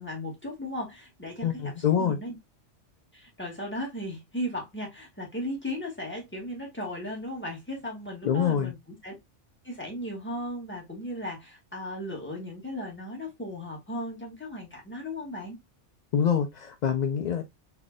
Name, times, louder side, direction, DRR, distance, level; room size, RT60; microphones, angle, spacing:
voice 1, 0.0-2.4 3.1-9.1 9.6-15.6, left 1 dB, 10° left, 1.5 m, -36 dB
voice 2, 1.4-2.2 8.2-8.7 16.1-17.4, left 8 dB, 65° left, 0.4 m, -25 dB
4.0 x 3.3 x 2.3 m
omnidirectional pair, 1.3 m